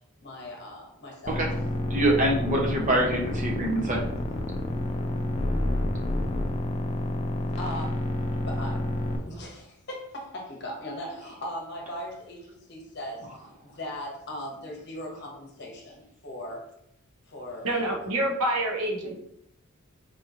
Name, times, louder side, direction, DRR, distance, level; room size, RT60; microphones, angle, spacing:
voice 1, 0.2-1.5 7.6-9.0 9.2-13.3 13.6-16.7 17.3-17.9, equal, 50° left, -1 dB, 0.9 m, -39 dB
sound 1, 1.3-9.2, left 1 dB, 30° left, 0.3 m, -29 dB
voice 2, 1.9-4.0, right 1 dB, 35° right, 0 dB, 0.6 m, -24 dB
voice 3, 17.6-19.2, right 1 dB, 85° right, 1 dB, 0.8 m, -27 dB
4.3 x 2.9 x 2.5 m, 0.75 s
head